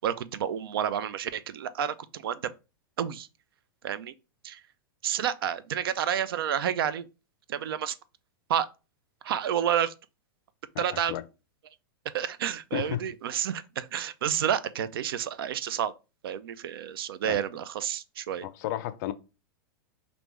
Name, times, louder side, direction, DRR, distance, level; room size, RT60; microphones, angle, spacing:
voice 1, 0.0-2.5 3.0-3.3 3.8-4.1 4.4-4.6 5.0-7.1 7.5-7.9 8.5-8.7 9.2-9.9 10.8-11.1 12.1-15.9 16.2-18.5, right 9 dB, 75° right, 0.4 m, -30 dB
voice 2, 10.7-11.2 12.7-13.0 17.2-17.4 18.4-19.1, left 13 dB, 55° left, 0.4 m, -33 dB
3.3 x 2.6 x 3.0 m
hypercardioid pair, 115°, 12 cm